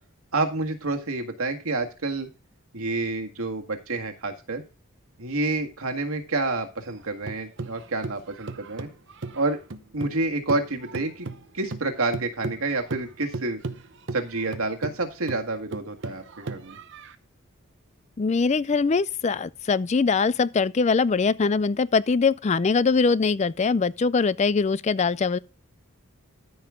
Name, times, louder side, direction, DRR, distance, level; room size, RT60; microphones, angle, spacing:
voice 1, 0.3-2.3 2.7-4.6 5.2-8.9 9.3-9.6 9.9-11.3 11.5-13.6 14.1-16.8, right 2 dB, 90° right, 1.8 m, -28 dB
sound 1, 6.8-10.2 10.5-17.2, right 3 dB, 60° right, 0.9 m, -36 dB
voice 2, 18.2-25.4, left 4 dB, 30° left, 0.4 m, -22 dB
13.5 x 5.7 x 3.6 m
head